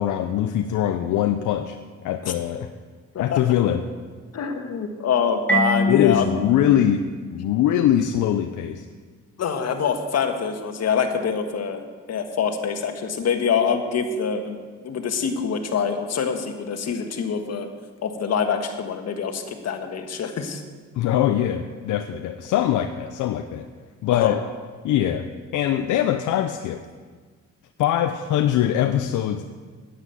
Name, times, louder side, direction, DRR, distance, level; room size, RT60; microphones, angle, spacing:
voice 1, 0.0-1.8 2.0-2.7 3.2-3.9 5.9-7.0 7.3-8.8 21.0-23.7 24.0-24.4 24.8-25.3 25.5-26.8 27.8-29.4, left 11 dB, 80° left, 8 dB, 0.7 m, -22 dB
voice 2, 4.3-6.3 9.4-11.8 12.1-17.7 18.0-20.6 24.1-24.4, left 6 dB, 60° left, 6 dB, 1.6 m, -25 dB
Marimba xylophone, 5.5-8.1, right 1 dB, 5° left, 2.7 m, -26 dB
9.9 x 9.6 x 8.4 m, 1.5 s
cardioid pair, 90°, 30 cm